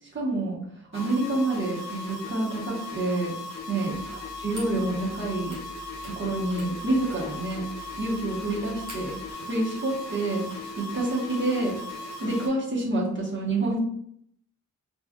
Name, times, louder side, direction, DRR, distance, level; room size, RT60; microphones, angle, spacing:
voice 1, 0.1-0.6 0.9-3.3 3.7-5.6 6.0-13.8, right 2 dB, 40° right, -4 dB, 0.9 m, -28 dB
sound 1, 0.9-12.5, left 2 dB, 55° left, 0.7 m, -38 dB
sound 2, 3.9-9.3, right 1 dB, 60° right, 1.1 m, -47 dB
3.2 x 2.3 x 2.2 m, 0.69 s
wide cardioid pair, 75°, 31 cm